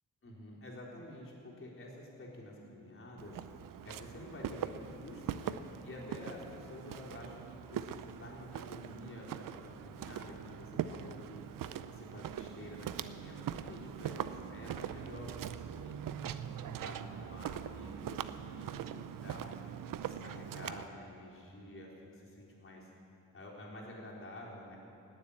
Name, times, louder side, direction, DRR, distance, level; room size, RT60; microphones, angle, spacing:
voice 1, 0.2-16.0 16.4-19.6 20.0-22.9 23.3-24.8, left 1 dB, 40° left, -4 dB, 4.0 m, -49 dB
Walk footsteps, 3.2-20.9, right 9 dB, 85° right, 0.6 m, -42 dB
19.0 x 7.7 x 8.6 m, 2.7 s
wide cardioid pair, 105°, 32 cm